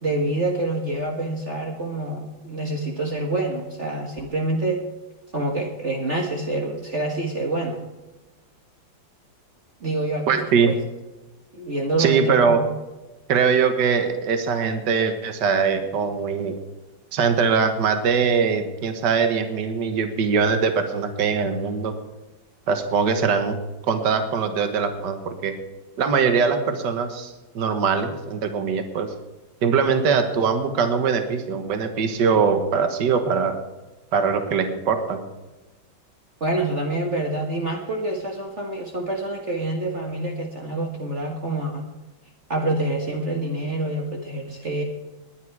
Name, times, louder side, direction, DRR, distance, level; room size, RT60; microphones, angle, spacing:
voice 1, 0.0-4.8 5.3-7.8 9.8-10.8 11.5-12.6 36.4-41.9 42.5-44.8, right 2 dB, 40° right, 1 dB, 1.7 m, -26 dB
voice 2, 10.3-10.7 12.0-12.6 13.3-16.6 17.1-21.9 22.7-23.6 23.9-25.5 26.0-29.1 29.6-33.6 34.1-35.2, right 6 dB, 60° right, 7 dB, 1.9 m, -22 dB
20.5 x 9.9 x 4.8 m, 1.1 s
omnidirectional pair, 2.1 m